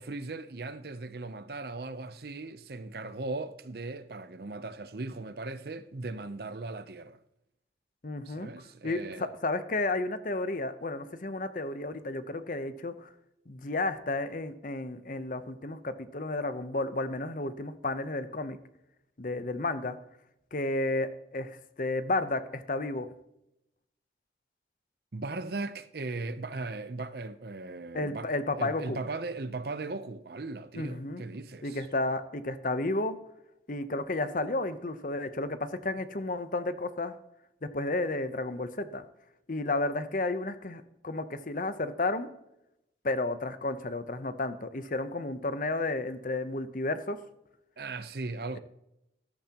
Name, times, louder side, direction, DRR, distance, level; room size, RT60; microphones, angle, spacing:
voice 1, 0.0-7.2 8.3-9.3 25.1-28.3 28.6-31.9 47.8-48.6, right 3 dB, 55° right, 0.7 m, -38 dB
voice 2, 8.0-8.5 8.8-13.1 13.5-18.6 19.2-20.0 20.5-23.1 27.9-29.0 30.7-31.2 31.6-33.2 33.7-37.1 37.7-39.1 39.5-42.3 43.0-47.2, left 2 dB, 45° left, 0.8 m, -32 dB
14.0 x 12.0 x 2.9 m
head